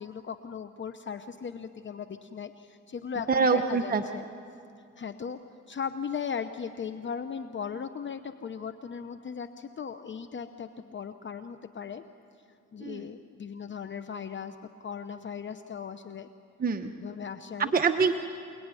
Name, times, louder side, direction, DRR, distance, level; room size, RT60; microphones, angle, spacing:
voice 1, 0.0-4.2 5.0-5.4 5.7-12.0 12.7-16.3 17.0-17.7, left 7 dB, 40° left, 10 dB, 0.9 m, -38 dB
voice 2, 3.3-4.0 12.8-13.0 16.6-16.9 17.6-18.1, right 5 dB, 30° right, 5 dB, 1.1 m, -25 dB
28.5 x 19.0 x 9.9 m, 2.5 s
cardioid pair, 90°, 30 cm